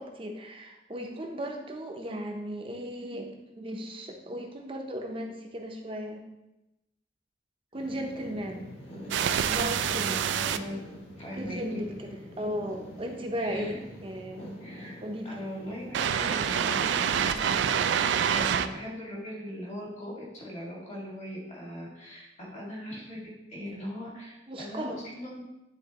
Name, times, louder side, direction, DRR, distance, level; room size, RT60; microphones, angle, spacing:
voice 1, 0.0-6.2 7.7-8.7 9.3-10.3 11.3-14.5 15.0-15.3 24.5-25.0, equal, 30° right, 2 dB, 0.7 m, -36 dB
sound 1, 7.7-18.2, equal, 60° left, 2.1 m, -45 dB
sound 2, 9.1-10.6 15.9-18.7, right 8 dB, 75° right, 0.3 m, -26 dB
voice 2, 10.3-10.8 11.2-11.8 13.4-13.8 14.6-17.8 18.3-25.4, equal, 35° left, -4 dB, 1.8 m, -40 dB
10.0 x 3.6 x 2.9 m, 0.96 s
head